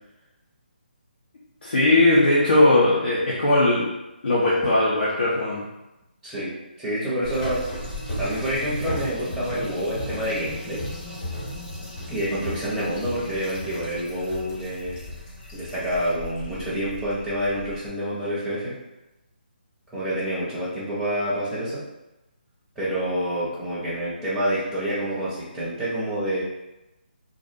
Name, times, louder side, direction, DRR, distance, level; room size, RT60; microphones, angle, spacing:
voice 1, 1.6-3.9 4.2-5.6, left 2 dB, 85° left, -7 dB, 0.6 m, -19 dB
voice 2, 6.8-7.6 8.2-10.8 12.1-15.0 15.5-18.7 19.9-21.8 22.8-26.4, equal, ahead, -10 dB, 0.5 m, -27 dB
sound 1, 7.2-17.9, left 1 dB, 25° left, 0.9 m, -35 dB
2.4 x 2.0 x 2.6 m, 0.95 s
hypercardioid pair, 160°, 6 cm